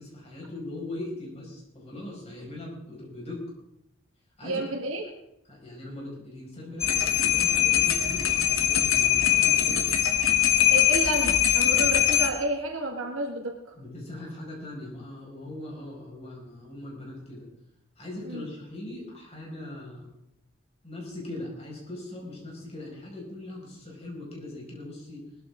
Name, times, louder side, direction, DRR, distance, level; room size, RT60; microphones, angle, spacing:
voice 1, 0.0-3.4 4.4-4.7 5.5-10.1 13.8-17.5 18.0-20.1 20.8-25.3, left 1 dB, 30° left, -2 dB, 5.5 m, -40 dB
voice 2, 4.4-5.0 10.7-13.7 18.2-18.5, right 1 dB, 85° right, 2 dB, 1.7 m, -31 dB
sound 1, 6.8-12.3, left 11 dB, 80° left, 1.6 m, -22 dB
19.5 x 13.5 x 3.7 m, 0.82 s
head